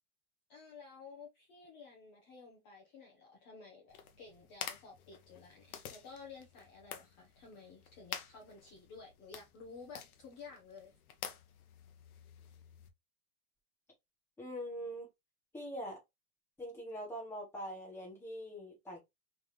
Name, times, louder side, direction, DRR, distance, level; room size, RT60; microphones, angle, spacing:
voice 1, 0.5-10.9, left 4 dB, 25° left, 0.9 m, -53 dB
sound 1, 3.9-12.9, left 8 dB, 65° left, 1.0 m, -49 dB
voice 2, 14.4-15.1 15.5-16.0 16.6-19.0, equal, 5° left, 1.4 m, -43 dB
3.6 x 3.6 x 3.2 m
supercardioid pair, 175°, 46 cm